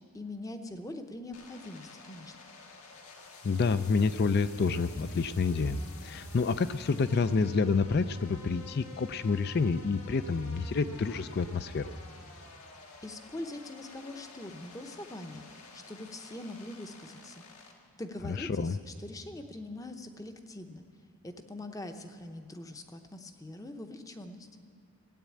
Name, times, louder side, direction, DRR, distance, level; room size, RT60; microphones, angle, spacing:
voice 1, 0.1-2.3 13.0-17.4 18.0-20.8 21.2-24.5, left 1 dB, 15° left, 7 dB, 0.7 m, -43 dB
sound 1, 1.3-17.7, left 3 dB, 75° left, 1.9 m, -51 dB
voice 2, 3.4-11.9 18.2-18.8, left 4 dB, 45° left, 13 dB, 0.4 m, -28 dB
16.0 x 9.3 x 8.5 m, 2.4 s
head